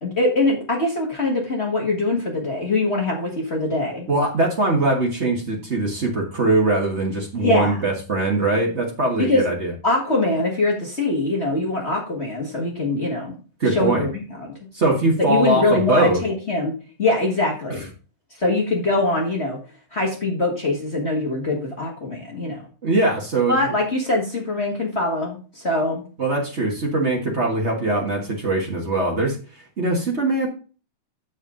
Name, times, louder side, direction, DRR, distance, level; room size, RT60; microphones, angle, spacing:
voice 1, 0.0-4.1 7.4-7.9 9.2-9.5 9.8-13.3 13.7-14.5 15.2-16.7 17.0-17.9 18.4-19.6 19.9-22.6 23.5-26.0, left 2 dB, 30° left, -2 dB, 1.2 m, -23 dB
voice 2, 4.1-9.7 13.6-14.0 14.7-16.2 22.8-23.7 26.2-29.4 29.8-30.5, right 2 dB, 55° right, 0 dB, 0.7 m, -21 dB
7.3 x 6.6 x 3.7 m, 0.36 s
omnidirectional pair, 3.7 m